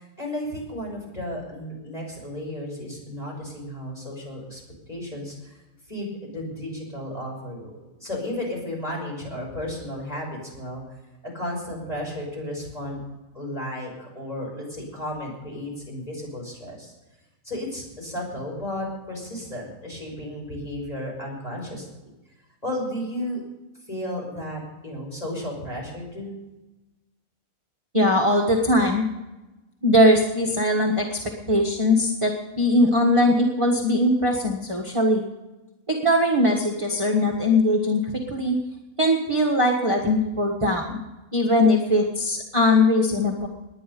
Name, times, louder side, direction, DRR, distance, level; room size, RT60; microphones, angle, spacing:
voice 1, 0.0-4.6 4.9-5.6 5.9-10.8 11.3-13.0 13.3-16.9 17.4-22.1 22.6-23.4 23.9-26.4, left 1 dB, 25° left, -2 dB, 5.8 m, -33 dB
voice 2, 27.9-29.0 29.8-31.2 31.5-35.2 35.9-38.6 39.0-41.0 41.3-43.5, left 1 dB, 20° right, -1 dB, 1.5 m, -20 dB
19.5 x 9.9 x 5.4 m, 1.1 s
omnidirectional pair, 1.5 m